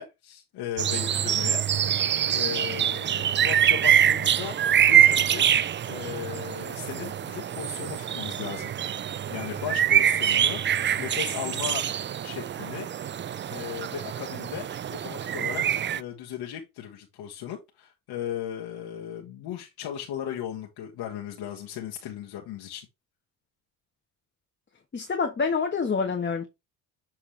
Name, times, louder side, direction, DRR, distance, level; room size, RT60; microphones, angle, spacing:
voice 1, 0.0-2.1 2.3-4.6 4.9-5.5 5.9-8.7 9.3-10.6 11.0-11.8 12.2-12.9 13.5-15.6 15.9-22.9, left 10 dB, 70° left, 1.7 m, -37 dB
sound 1, 0.8-16.0, right 10 dB, 30° right, 0.4 m, -25 dB
voice 2, 24.9-26.5, left 5 dB, 25° left, 1.4 m, -27 dB
7.5 x 4.6 x 3.3 m
supercardioid pair, 85°, 40 cm